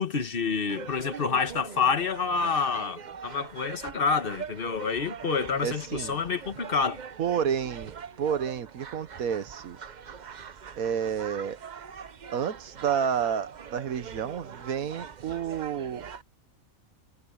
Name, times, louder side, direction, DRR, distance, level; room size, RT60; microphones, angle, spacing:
voice 1, 0.0-7.0, left 5 dB, 40° left, 1.4 m, -28 dB
sound 1, 0.7-16.2, right 7 dB, 45° right, 0.7 m, -43 dB
voice 2, 5.6-6.2 7.2-9.8 10.8-11.6 12.3-16.0, right 8 dB, 90° right, 1.5 m, -30 dB
omnidirectional pair, 1.4 m